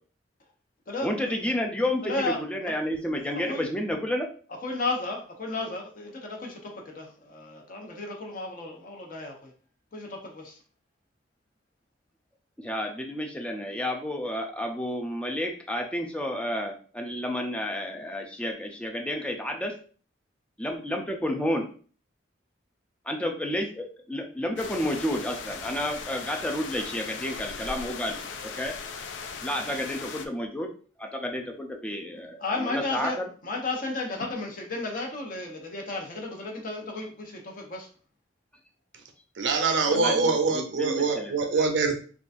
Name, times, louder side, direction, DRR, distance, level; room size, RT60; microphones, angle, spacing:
voice 1, 1.0-4.3 12.6-18.5 18.8-19.7 20.6-21.7 23.1-28.7 29.4-30.7 31.0-33.2 39.9-41.3, left 1 dB, 5° left, 2 dB, 0.4 m, -31 dB
voice 2, 2.0-2.4 2.6-2.7 3.5-3.6 4.6-9.5 9.9-10.5 32.4-33.2 33.4-37.9, left 2 dB, 45° left, 0 dB, 0.7 m, -33 dB
sound 1, 24.6-30.3, left 5 dB, 70° left, 0.4 m, -38 dB
voice 3, 39.4-42.0, right 4 dB, 70° right, 4 dB, 0.6 m, -24 dB
3.7 x 2.4 x 2.5 m, 0.41 s
head